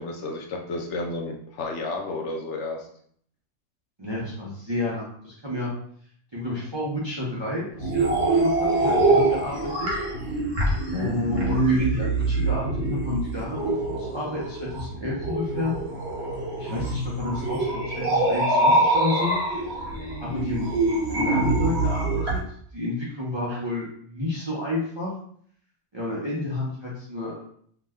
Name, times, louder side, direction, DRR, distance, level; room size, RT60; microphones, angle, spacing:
voice 1, 0.0-2.9 10.9-11.2, left 3 dB, 70° left, 2 dB, 0.8 m, -31 dB
voice 2, 4.0-5.7 6.3-9.7 10.9-12.6 12.9-15.7 16.6-19.3 20.2-20.7 21.1-22.4 22.7-25.1 25.9-27.4, left 2 dB, 30° right, -6 dB, 0.5 m, -30 dB
sound 1, 7.8-22.4, right 2 dB, 60° right, 1.1 m, -24 dB
2.8 x 2.2 x 3.5 m, 0.62 s
omnidirectional pair, 1.3 m